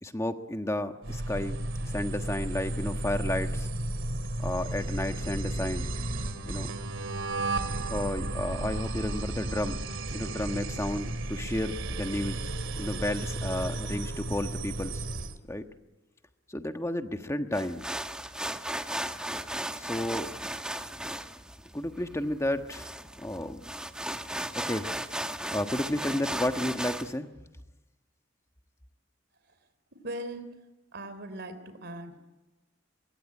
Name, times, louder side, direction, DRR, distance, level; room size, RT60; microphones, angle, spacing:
voice 1, 0.0-1.6 1.8-3.7 4.4-5.9 6.4-6.7 7.9-9.8 10.1-12.5 12.8-15.0 15.5-15.6 16.5-17.8 19.8-20.3 21.7-23.6 24.5-25.0 25.5-27.3, left 1 dB, 15° left, 7 dB, 1.4 m, -32 dB
sound 1, 1.0-15.4, right 2 dB, 80° right, 2.4 m, -33 dB
sound 2, 17.5-27.1, right 1 dB, 5° right, 1.1 m, -36 dB
voice 2, 29.9-30.4 30.9-32.2, right 1 dB, 60° right, 10 dB, 3.4 m, -39 dB
24.5 x 22.5 x 9.8 m, 1.1 s
head